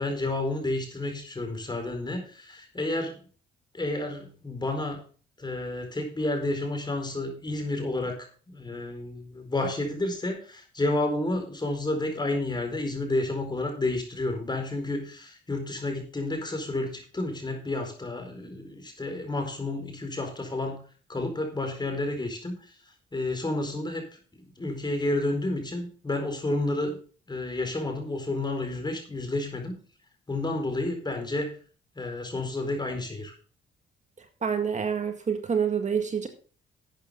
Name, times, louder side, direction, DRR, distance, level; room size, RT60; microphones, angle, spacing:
voice 1, 0.0-3.2 3.7-5.0 5.4-8.3 8.5-20.8 21.1-24.0 24.3-27.0 27.3-29.7 30.3-31.6 31.9-33.3, left 2 dB, 20° left, 4 dB, 4.7 m, -30 dB
voice 2, 34.4-36.3, right 7 dB, 35° right, 6 dB, 1.8 m, -27 dB
12.5 x 8.5 x 3.9 m, 0.40 s
cardioid pair, 90°, 20 cm